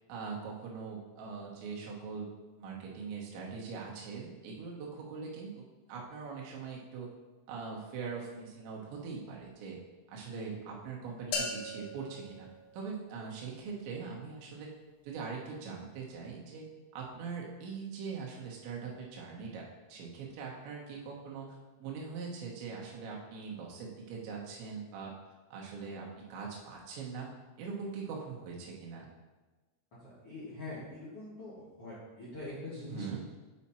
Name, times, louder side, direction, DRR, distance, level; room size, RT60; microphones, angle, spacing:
voice 1, 0.1-2.3 2.6-7.1 7.5-9.8 10.1-12.5 12.7-14.7 15.0-16.7 16.9-25.1 25.5-27.3 27.6-29.1 32.9-33.2, right 5 dB, 75° right, -2 dB, 3.2 m, -42 dB
voice 2, 10.3-10.7 30.0-31.5 31.8-33.2, left 2 dB, 45° left, -10 dB, 2.1 m, -44 dB
sound 1, 11.3-13.3, left 3 dB, 85° left, 3.5 m, -39 dB
8.5 x 5.0 x 4.3 m, 1.2 s
omnidirectional pair, 5.5 m